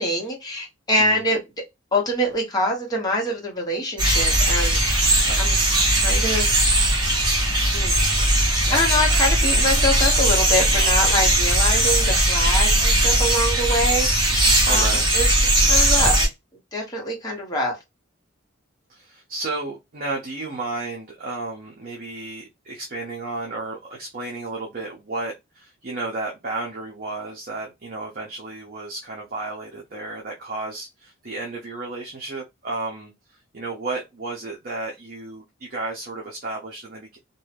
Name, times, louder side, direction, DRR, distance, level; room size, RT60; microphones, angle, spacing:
voice 1, 0.0-1.4 1.9-5.6 5.9-6.7 7.7-8.0 8.5-15.3 15.7-16.2 16.7-17.8, left 1 dB, 20° left, 1.0 m, -25 dB
sound 1, 4.0-16.3, right 1 dB, 20° right, 1.1 m, -19 dB
voice 2, 14.6-15.1 18.9-37.2, right 2 dB, 45° right, 0.6 m, -33 dB
2.7 x 2.2 x 3.3 m
head